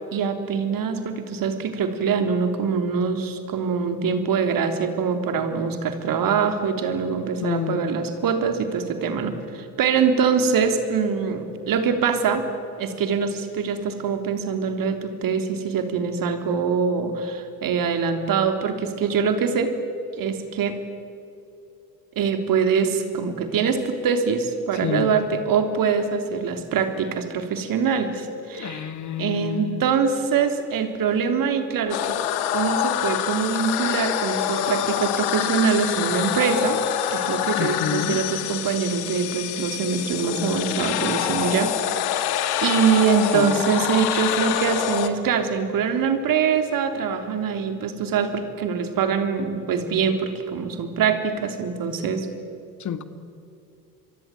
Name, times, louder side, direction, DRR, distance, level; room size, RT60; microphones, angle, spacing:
voice 1, 0.1-12.4 12.8-19.7 20.2-20.8 22.1-28.9 29.2-32.0 32.5-36.8 37.1-42.2 42.6-52.3, right 6 dB, 55° right, 7 dB, 3.4 m, -24 dB
voice 2, 7.4-7.8 24.8-25.1 28.5-29.8 37.6-38.2 43.3-43.6 52.8-53.0, left 9 dB, 45° left, 11 dB, 1.9 m, -28 dB
sound 1, 31.9-45.1, left 11 dB, 65° left, 2.1 m, -26 dB
27.5 x 23.5 x 9.1 m, 2.7 s
hypercardioid pair, 60°, 41 cm